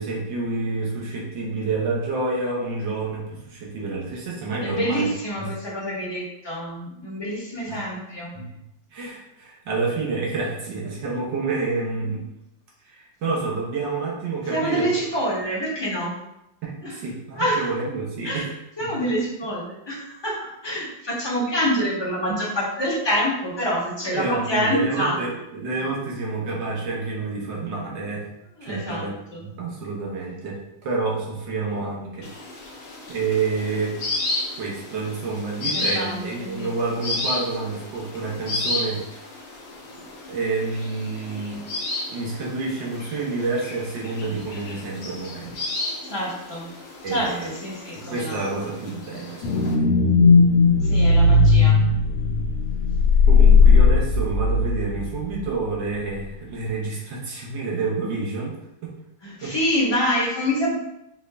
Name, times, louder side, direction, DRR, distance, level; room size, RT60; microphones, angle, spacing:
voice 1, 0.0-5.1 5.4-5.5 7.7-7.8 8.3-8.5 8.9-12.3 12.8-14.9 16.6-18.5 18.8-18.9 24.1-28.3 28.6-29.1 29.4-32.3 32.6-32.8 33.1-34.0 34.6-39.0 40.3-41.7 42.1-45.6 47.0-47.6 47.9-49.9 53.3-58.9 59.4-59.5, right 3 dB, 80° right, -3 dB, 1.7 m, -28 dB
voice 2, 4.6-8.3 14.5-16.1 16.8-17.0 17.4-17.7 18.2-18.5 18.8-25.2 28.6-29.4 35.7-36.7 46.0-46.7 47.1-48.4 50.8-51.8 59.2-60.7, equal, 20° left, -5 dB, 0.8 m, -26 dB
sound 1, 32.2-49.7, left 2 dB, 60° left, 0.6 m, -33 dB
sound 2, 49.4-55.1 55.4-55.5, left 4 dB, 85° left, 1.3 m, -16 dB
5.3 x 2.6 x 3.3 m, 0.86 s
omnidirectional pair, 2.0 m